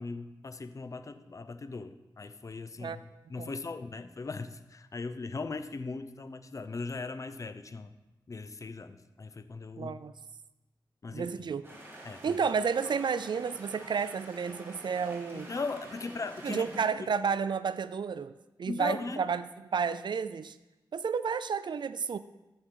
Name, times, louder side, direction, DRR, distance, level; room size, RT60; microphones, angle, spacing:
voice 1, 0.0-7.9 8.3-10.0 11.0-11.3 12.0-12.4 15.3-16.7 17.0-17.1 18.7-19.2, left 3 dB, 40° left, 10 dB, 0.6 m, -39 dB
voice 2, 9.8-10.1 11.1-11.7 12.2-15.5 16.4-18.3 18.6-20.6 20.9-22.2, right 6 dB, 65° right, 14 dB, 0.4 m, -31 dB
sound 1, 11.6-16.9, right 1 dB, 25° right, 2.4 m, -48 dB
13.5 x 6.2 x 3.8 m, 1.0 s
wide cardioid pair, 105°, 8 cm